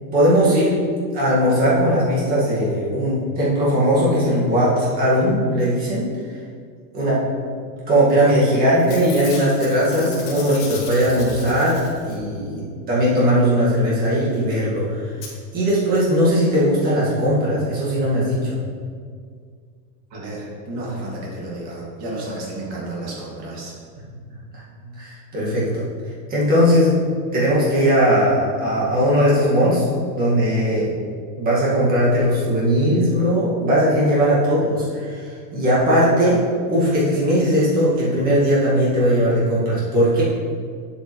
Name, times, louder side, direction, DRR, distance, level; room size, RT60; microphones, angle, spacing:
voice 1, 0.0-0.7 1.1-6.1 6.9-7.2 7.9-15.0 15.5-18.6 25.0-25.8 26.3-26.9 27.3-29.9 30.1-30.9 31.4-36.4 36.7-40.2, equal, 20° right, -7 dB, 1.7 m, -19 dB
Packing tape duct tape / Tearing, 8.2-8.5 8.7-12.3 14.2-14.3 14.5-14.6 15.2-15.3 15.9-16.0 16.3-16.4, left 4 dB, 50° left, 2.2 m, -36 dB
voice 2, 20.1-23.7, right 1 dB, 35° right, -4 dB, 2.0 m, -31 dB
8.6 x 7.6 x 3.1 m, 2.1 s
supercardioid pair, 175°, 49 cm